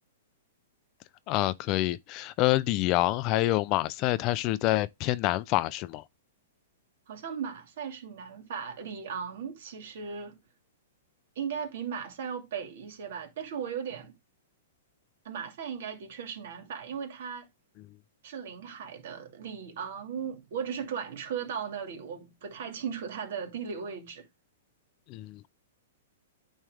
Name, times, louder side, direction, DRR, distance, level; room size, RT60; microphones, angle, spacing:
voice 1, 1.3-6.0 25.1-25.5, left 16 dB, 30° left, 0.4 m, -27 dB
voice 2, 7.1-10.4 11.4-14.1 15.2-17.5 18.2-24.3, right 7 dB, 60° right, 2.5 m, -37 dB
9.2 x 3.2 x 4.8 m
hypercardioid pair, 155°, 0 cm